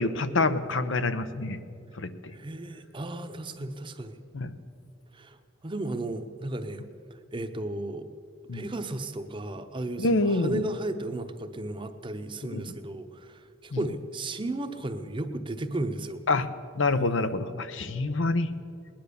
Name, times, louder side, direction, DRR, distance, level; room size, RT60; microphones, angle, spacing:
voice 1, 0.0-1.6 2.0-2.1 4.3-4.5 8.5-8.7 10.0-10.7 12.5-12.6 13.7-13.8 16.3-16.5 16.8-18.5, left 2 dB, 90° left, 11 dB, 0.8 m, -26 dB
voice 2, 2.3-4.2 5.1-5.4 5.6-6.9 7.1-8.1 8.5-16.2, right 2 dB, 25° right, 8 dB, 0.8 m, -34 dB
19.5 x 10.5 x 6.8 m, 2.4 s
head